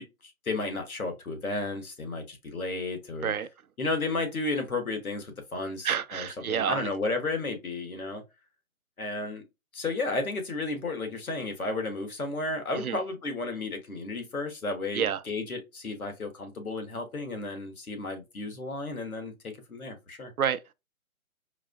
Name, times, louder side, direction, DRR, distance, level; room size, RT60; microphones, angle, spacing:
voice 1, 0.2-3.3 3.8-8.2 9.0-9.4 9.7-20.3, left 2 dB, 80° left, 1.4 m, -33 dB
voice 2, 5.8-6.9 12.7-13.0 14.9-15.2 20.4-20.7, right 8 dB, 90° right, 0.6 m, -29 dB
4.7 x 2.3 x 2.3 m
figure-of-eight pair, 145°, 42 cm